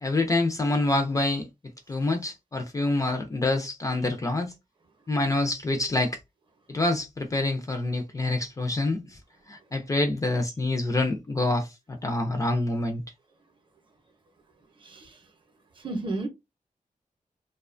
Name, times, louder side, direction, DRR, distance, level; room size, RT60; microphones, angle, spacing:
voice 1, 0.0-1.5 1.9-4.5 5.1-6.2 6.7-9.2 9.5-13.0, left 2 dB, 25° left, 0.4 m, -26 dB
voice 2, 14.8-15.1 15.8-16.3, right 2 dB, 35° right, 0.6 m, -32 dB
2.6 x 2.1 x 2.4 m
wide cardioid pair, 165°, 14 cm